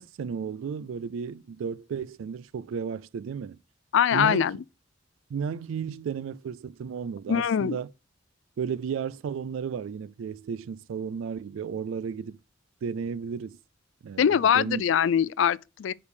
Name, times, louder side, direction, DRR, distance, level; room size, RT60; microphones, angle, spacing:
voice 1, 0.0-3.6 4.1-4.5 5.3-7.9 8.6-12.4 12.8-13.6 14.0-14.8, right 6 dB, 80° right, 0.3 m, -33 dB
voice 2, 3.9-4.6 7.3-7.8 14.2-15.9, left 8 dB, 65° left, 0.3 m, -23 dB
5.2 x 5.0 x 6.4 m
head